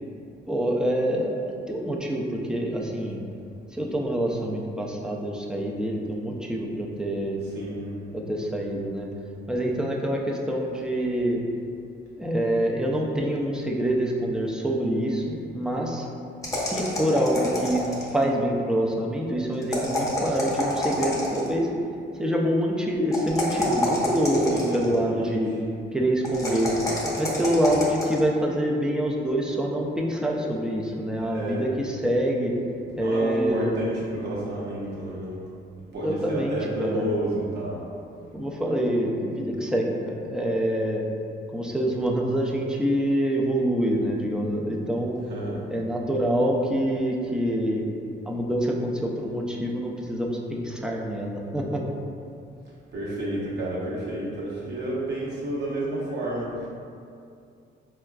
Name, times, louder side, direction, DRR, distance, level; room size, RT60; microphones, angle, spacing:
voice 1, 0.5-3.2 3.7-7.4 8.1-9.1 9.5-11.4 12.2-16.1 16.5-17.8 18.1-21.7 22.2-25.5 25.9-26.7 27.2-32.5 33.0-33.9 36.0-37.1 38.3-41.0 41.5-45.2 45.7-47.8 48.2-51.8, right 1 dB, 5° right, -1 dB, 0.4 m, -26 dB
voice 2, 7.5-8.0 24.5-25.4 31.2-31.7 32.9-35.4 35.9-37.8 45.1-45.6 52.9-56.7, right 1 dB, 55° right, -6 dB, 1.0 m, -30 dB
sound 1, 16.4-18.2 19.6-21.5 23.1-24.9 26.2-28.2, left 1 dB, 15° left, 0.8 m, -28 dB
4.2 x 2.2 x 2.3 m, 2.4 s
cardioid pair, 90°, 20 cm